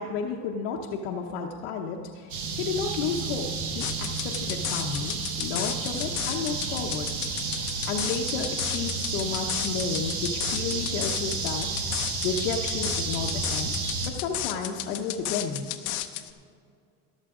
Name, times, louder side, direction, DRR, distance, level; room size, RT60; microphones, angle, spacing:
voice 1, 0.0-3.5 3.7-7.1 7.6-13.7 14.0-15.7, left 5 dB, 80° left, 0 dB, 1.0 m, -32 dB
sound 1, 2.3-14.1, right 4 dB, 50° right, 1.8 m, -31 dB
sound 2, 3.8-16.3, left 14 dB, 50° left, 0.7 m, -34 dB
14.0 x 11.5 x 3.7 m, 2.3 s
cardioid pair, 160°, 37 cm